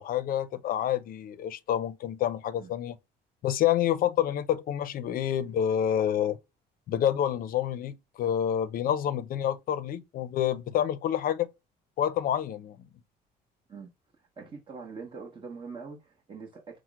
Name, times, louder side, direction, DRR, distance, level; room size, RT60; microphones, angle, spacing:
voice 1, 0.0-3.0 3.4-6.4 6.9-11.5 12.0-12.8, left 10 dB, 60° left, 0.5 m, -28 dB
voice 2, 14.4-16.8, right 4 dB, 30° right, 1.1 m, -43 dB
5.7 x 2.1 x 2.3 m
cardioid pair, 110°, 17 cm